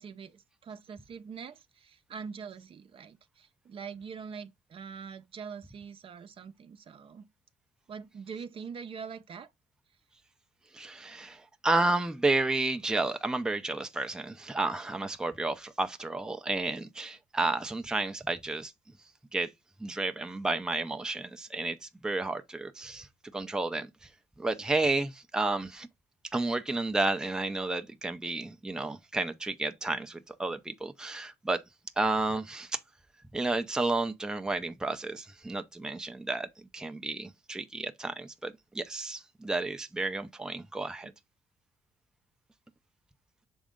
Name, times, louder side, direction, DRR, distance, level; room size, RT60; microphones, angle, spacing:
voice 1, 0.0-7.3 7.9-9.5 40.8-40.9, right 6 dB, 45° right, 0.7 m, -44 dB
voice 2, 10.7-18.7 19.3-19.5 19.8-23.1 23.3-23.9 24.4-25.9 26.3-31.6 32.0-32.8 33.3-36.5 36.7-41.1, right 2 dB, 5° right, 0.6 m, -31 dB
6.3 x 4.1 x 3.6 m
cardioid pair, 125°, 12 cm